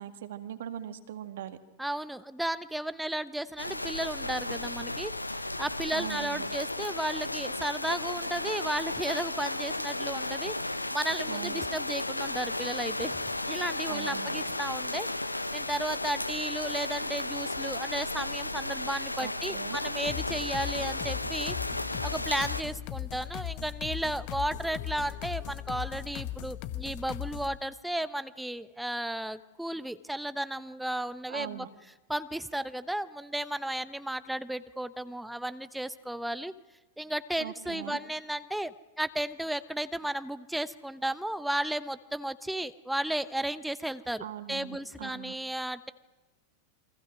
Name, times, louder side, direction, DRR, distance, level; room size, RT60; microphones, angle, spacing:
voice 1, 0.0-1.6 5.9-6.5 11.3-11.6 13.9-14.4 19.2-19.8 31.3-31.7 37.4-38.0 44.2-45.4, right 11 dB, 60° right, 8 dB, 2.1 m, -40 dB
voice 2, 1.8-13.2 13.5-15.1 15.5-31.7 32.1-36.5 37.0-45.9, right 1 dB, 5° right, 13 dB, 1.0 m, -34 dB
sound 1, 3.6-22.6, left 2 dB, 85° left, 1.1 m, -34 dB
sound 2, 20.1-27.6, left 11 dB, 45° left, 1.5 m, -38 dB
29.0 x 24.5 x 6.3 m, 1.1 s
figure-of-eight pair, 90°, 0 cm